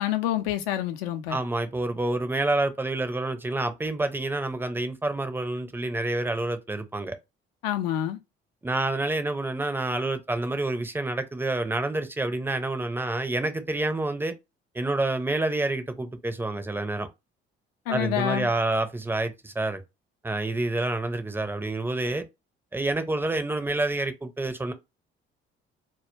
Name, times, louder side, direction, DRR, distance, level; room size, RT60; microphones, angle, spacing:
voice 1, 0.0-1.4 7.6-8.2 17.9-18.5, left 12 dB, 75° left, 0.5 m, -27 dB
voice 2, 1.3-7.2 8.6-14.3 14.7-17.1 17.9-19.8 20.2-22.2 22.7-24.7, right 2 dB, 5° right, 0.4 m, -28 dB
2.2 x 2.1 x 2.9 m
figure-of-eight pair, 45°, 30 cm